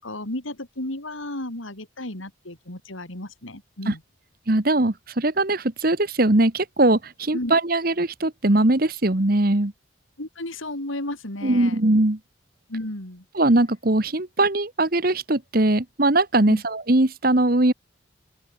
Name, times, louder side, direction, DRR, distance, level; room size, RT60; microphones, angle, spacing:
voice 1, 0.0-4.0 7.3-7.5 10.2-11.8 12.7-13.2 16.5-16.6, left 1 dB, 85° left, 4.9 m, -33 dB
voice 2, 4.5-9.7 11.4-12.2 13.3-17.7, right 2 dB, 45° right, 1.4 m, -20 dB
open air
head